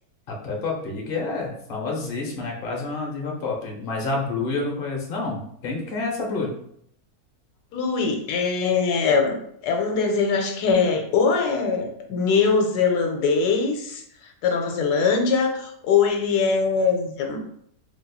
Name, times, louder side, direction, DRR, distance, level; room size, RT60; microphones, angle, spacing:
voice 1, 0.3-6.5, left 3 dB, 45° left, -1 dB, 0.8 m, -28 dB
voice 2, 7.7-9.4 9.6-14.0 14.4-17.4, left 5 dB, 80° left, 3 dB, 1.1 m, -22 dB
4.0 x 2.8 x 2.3 m, 0.69 s
omnidirectional pair, 1.7 m